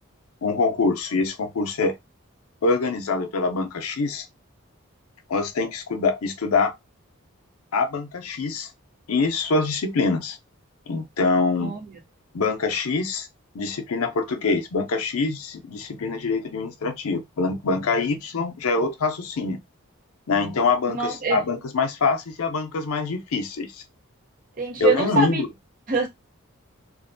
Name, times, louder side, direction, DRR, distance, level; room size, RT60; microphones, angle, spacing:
voice 1, 0.4-2.0 2.6-4.3 5.3-6.7 7.7-8.7 9.1-10.4 10.9-11.8 12.3-13.3 13.5-19.6 20.3-23.8 24.8-25.5, left 4 dB, 85° left, 0.5 m, -24 dB
voice 2, 20.9-21.4 24.6-25.4 25.9-26.1, right 4 dB, 40° right, 0.7 m, -24 dB
2.5 x 2.1 x 2.5 m
head